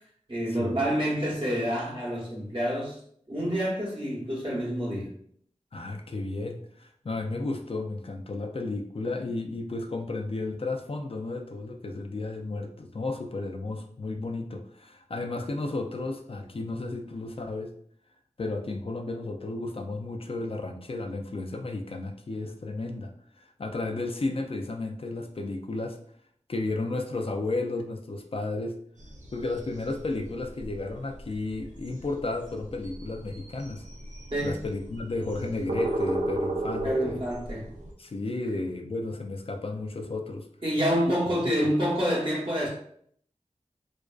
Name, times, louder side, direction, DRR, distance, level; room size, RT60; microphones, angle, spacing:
voice 1, 0.3-3.0 3.3-5.1 34.3-34.6 36.8-37.7 40.6-42.7, equal, 45° right, -5 dB, 0.8 m, -28 dB
voice 2, 5.7-17.7 18.4-23.1 23.4-26.0 26.5-28.8 29.3-33.9 34.4-37.2 38.0-40.5 41.4-41.5, left 2 dB, 50° left, 4 dB, 0.4 m, -33 dB
sound 1, 29.0-37.9, right 1 dB, 85° right, 0.4 m, -35 dB
2.4 x 2.2 x 2.3 m, 0.63 s
wide cardioid pair, 45°, 12 cm